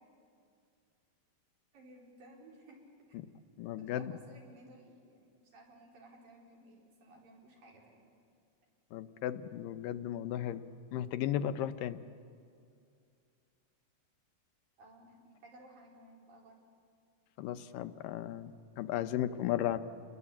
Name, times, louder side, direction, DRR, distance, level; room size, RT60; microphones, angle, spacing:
voice 1, 1.7-2.8 3.8-8.1 14.8-16.7, right 1 dB, 85° right, -2 dB, 6.3 m, -57 dB
voice 2, 3.6-4.1 8.9-10.6 10.9-12.0 17.4-19.8, left 11 dB, 80° left, 10 dB, 2.5 m, -35 dB
30.0 x 21.5 x 8.5 m, 2.3 s
omnidirectional pair, 3.9 m